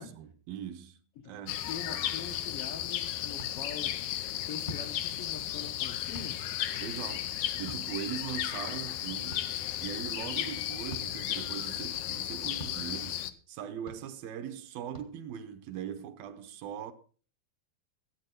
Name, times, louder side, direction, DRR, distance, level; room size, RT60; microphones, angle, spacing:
voice 1, 0.0-1.0 1.3-1.7 6.8-9.5 9.8-16.9, right 9 dB, 75° right, 2.6 m, -41 dB
sound 1, 1.5-13.3, left 12 dB, 90° left, 1.6 m, -34 dB
voice 2, 1.7-4.0 4.5-6.4, left 6 dB, 70° left, 1.4 m, -43 dB
sound 2, 3.4-3.5 4.6-4.9 6.1-6.3 7.7-7.8 9.3-9.4 10.9-11.1 12.6-12.8 13.9-14.0 14.9-15.1, left 1 dB, 30° left, 0.9 m, -42 dB
15.0 x 8.6 x 5.8 m
omnidirectional pair, 4.4 m